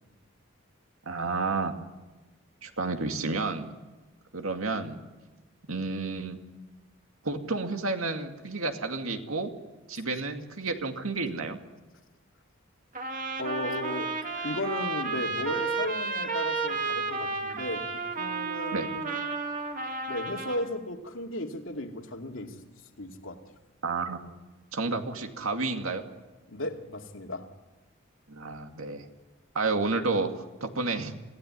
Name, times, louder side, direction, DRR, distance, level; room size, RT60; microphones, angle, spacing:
voice 1, 1.1-1.8 2.6-3.7 4.3-5.0 5.7-6.4 7.2-9.5 9.9-11.6 18.7-18.9 23.8-24.2 24.7-26.0 28.3-29.1 29.5-31.1, right 3 dB, 85° right, 5 dB, 2.3 m, -30 dB
Trumpet, 12.9-20.7, right 4 dB, 40° right, 2.1 m, -32 dB
voice 2, 13.4-14.1 14.4-17.9 18.2-19.2 20.1-22.6 23.0-23.4 26.5-27.5, left 1 dB, 75° left, 3 dB, 2.4 m, -35 dB
26.5 x 16.5 x 9.7 m, 1.2 s
head